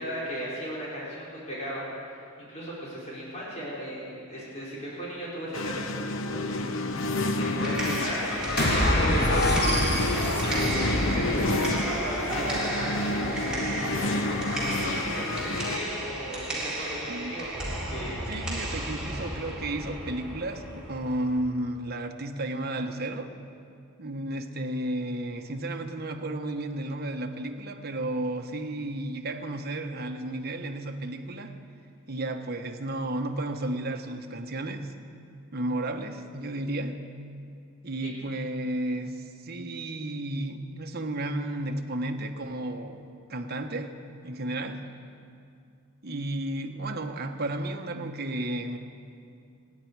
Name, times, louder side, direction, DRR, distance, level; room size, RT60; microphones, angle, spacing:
voice 1, 0.0-9.5 9.8-17.5 17.9-18.6 38.0-38.1, equal, 35° left, -7 dB, 4.5 m, -37 dB
sound 1, 5.5-15.8, left 2 dB, 70° left, 0.7 m, -30 dB
sound 2, 7.4-21.4, right 1 dB, 5° right, 3.9 m, -33 dB
sound 3, 8.6-11.9, left 1 dB, 55° left, 2.3 m, -25 dB
voice 2, 18.3-23.3 24.0-31.6 32.1-34.9 35.5-37.0 37.8-43.9 44.2-44.9 46.0-48.8, right 1 dB, 50° right, 4 dB, 1.1 m, -33 dB
28.0 x 10.5 x 4.7 m, 2.4 s
head